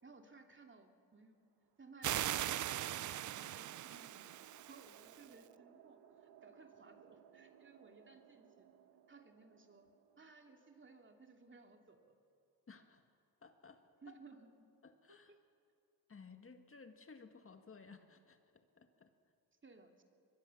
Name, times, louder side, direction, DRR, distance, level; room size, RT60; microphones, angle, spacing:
voice 1, 0.0-1.4 1.8-8.6 9.1-9.9 10.2-12.1 14.0-14.5 15.3-15.4 19.6-20.0, right 4 dB, 30° right, 4 dB, 2.8 m, -60 dB
sound 1, 1.4-11.9, right 9 dB, 75° right, 1.6 m, -65 dB
sound 2, 2.0-5.3, right 13 dB, 50° right, 0.5 m, -40 dB
voice 2, 12.7-13.0 13.4-14.2 14.8-15.3 16.1-19.1, left 4 dB, 35° left, 6 dB, 1.8 m, -58 dB
23.0 x 21.5 x 7.1 m, 2.4 s
cardioid pair, 75°, 39 cm